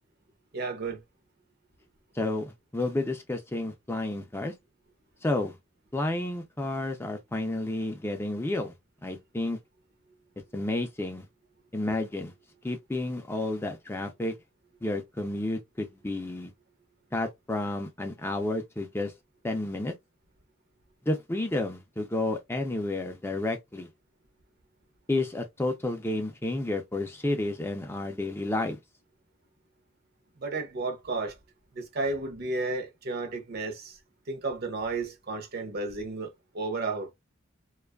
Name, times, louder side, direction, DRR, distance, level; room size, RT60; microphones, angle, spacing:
voice 1, 0.5-1.0 30.4-31.4 31.7-34.0 34.3-36.3 36.5-37.1, right 3 dB, 50° right, 0.6 m, -32 dB
voice 2, 2.1-4.5 5.2-5.6 5.9-8.7 9.0-9.6 10.5-11.2 11.7-12.3 12.6-14.3 14.8-16.5 17.1-19.1 19.4-19.9 21.1-23.9 25.1-28.8, left 2 dB, 10° left, 0.4 m, -31 dB
2.5 x 2.3 x 2.2 m
head